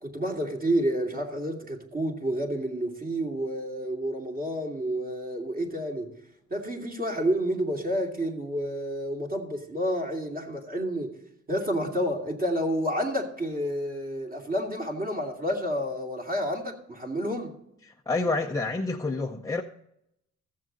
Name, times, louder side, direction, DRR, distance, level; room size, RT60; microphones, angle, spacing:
voice 1, 0.0-6.1 6.5-11.2 11.5-17.5, equal, 30° right, 2.6 m, -29 dB
voice 2, 17.8-19.6, left 3 dB, 10° left, 0.7 m, -28 dB
15.0 x 7.5 x 3.9 m
cardioid pair, 90°, 30 cm